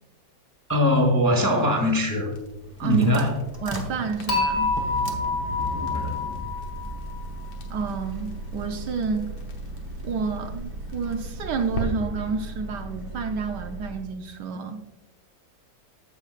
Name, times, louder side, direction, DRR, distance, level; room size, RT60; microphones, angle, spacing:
voice 1, 0.7-2.3 2.8-3.3 5.9-6.1, left 1 dB, 10° left, 1 dB, 0.9 m, -21 dB
Crackle, 2.3-11.9, left 1 dB, 85° left, 1.9 m, -42 dB
sound 1, 2.5-14.1, right 1 dB, 30° right, 0.4 m, -36 dB
voice 2, 2.8-3.3 3.6-4.7 7.7-9.3 10.0-14.8, right 5 dB, 70° right, 6 dB, 1.2 m, -29 dB
Dishes pots and pans / Chink clink, 4.3-7.4, left 3 dB, 55° left, 2.4 m, -27 dB
14.5 x 5.4 x 2.4 m, 1.0 s
omnidirectional pair, 2.0 m